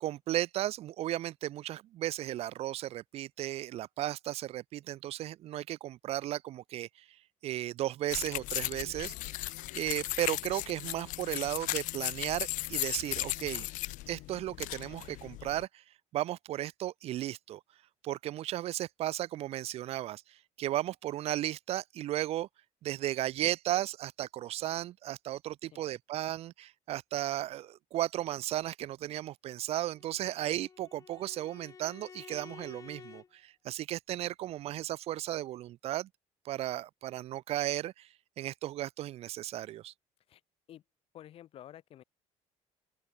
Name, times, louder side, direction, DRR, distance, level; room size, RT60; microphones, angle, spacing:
voice 1, 0.0-6.9 7.4-13.7 14.1-15.8 16.1-17.6 18.0-22.5 22.8-36.1 36.4-38.1 38.4-39.9, right 14 dB, 50° right, 0.6 m, -35 dB
sound 1, 8.1-15.6, left 19 dB, 85° left, 1.2 m, -37 dB
Bowed string instrument, 29.7-33.3, left 6 dB, 25° left, 4.0 m, -52 dB
voice 2, 41.1-42.0, left 11 dB, 50° left, 3.7 m, -51 dB
open air
cardioid pair, 175°, 13 cm